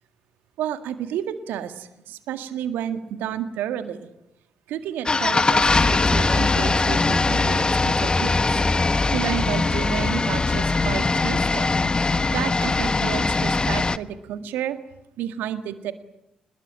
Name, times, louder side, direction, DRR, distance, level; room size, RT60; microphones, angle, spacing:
voice 1, 0.6-4.1 4.7-8.6 9.1-14.8 15.2-15.9, right 10 dB, 70° right, 9 dB, 1.9 m, -31 dB
sound 1, 5.1-14.0, left 3 dB, 25° left, 1.2 m, -21 dB
26.0 x 21.0 x 8.9 m, 0.86 s
hypercardioid pair, 40°, 3 cm